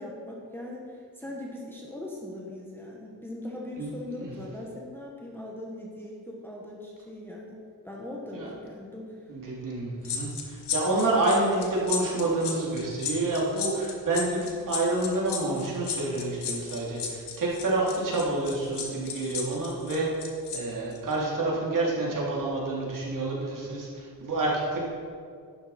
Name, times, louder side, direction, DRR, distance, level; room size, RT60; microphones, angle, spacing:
voice 1, 0.0-7.6 7.8-9.3, left 1 dB, 5° left, -3 dB, 1.3 m, -40 dB
voice 2, 3.8-4.3 8.3-8.5 9.3-20.1 20.5-24.9, right 2 dB, 50° right, -5 dB, 3.2 m, -28 dB
sound 1, 10.0-20.6 20.9-21.1, left 7 dB, 90° left, 1.5 m, -34 dB
11.5 x 9.9 x 4.3 m, 2.2 s
wide cardioid pair, 140°, 39 cm